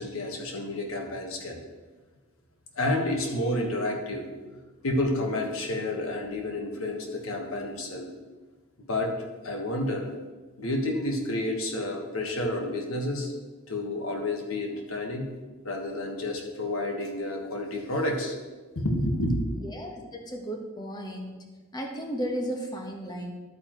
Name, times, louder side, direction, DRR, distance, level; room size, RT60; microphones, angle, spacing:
voice 1, 0.0-1.6 2.7-4.2 4.8-8.1 8.8-9.1 9.4-10.1 10.6-13.3 13.7-15.3 15.6-18.3 18.7-19.3, left 1 dB, 80° left, 2 dB, 1.5 m, -30 dB
voice 2, 19.7-21.5 21.7-23.3, equal, 20° left, 2 dB, 1.2 m, -34 dB
11.5 x 8.7 x 3.1 m, 1.3 s
head